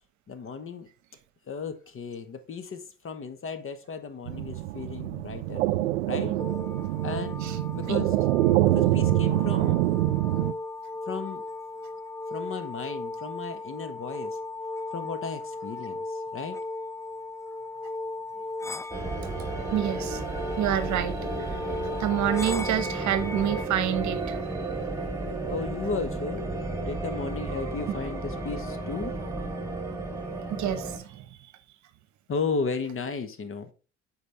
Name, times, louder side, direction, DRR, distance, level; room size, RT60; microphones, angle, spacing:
voice 1, 0.3-0.9 1.5-5.6 6.1-6.4 7.0-7.4 7.7-8.1 8.6-9.8 11.1-11.4 12.3-14.4 14.9-16.6 25.5-26.4 26.7-29.1 32.3-33.7, left 5 dB, 35° left, 1.3 m, -34 dB
sound 1, 4.3-10.5, right 16 dB, 85° right, 0.5 m, -25 dB
sound 2, 6.4-23.7, left 2 dB, 10° left, 0.3 m, -37 dB
sound 3, 18.9-31.0, right 3 dB, 10° right, 2.4 m, -33 dB
voice 2, 19.7-20.2 20.6-21.6 22.0-24.4 30.5-31.2, right 10 dB, 50° right, 1.0 m, -28 dB
8.1 x 4.7 x 3.4 m
hypercardioid pair, 65°, 36 cm